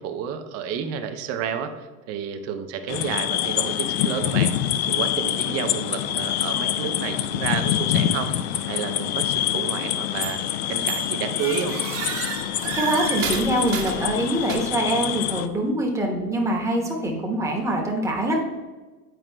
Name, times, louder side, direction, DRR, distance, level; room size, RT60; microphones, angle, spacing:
voice 1, 0.0-4.5 4.9-8.3 8.7-10.4 10.7-11.8, right 7 dB, 35° right, 8 dB, 0.6 m, -30 dB
sound 1, 2.9-15.5, left 11 dB, 45° left, 0.4 m, -26 dB
sound 2, 10.2-10.5 10.9-14.9, right 7 dB, 55° right, 1.4 m, -32 dB
voice 2, 12.7-18.4, right 1 dB, 5° right, 0 dB, 1.0 m, -24 dB
9.1 x 4.8 x 2.2 m, 1.3 s
figure-of-eight pair, 95°, 46 cm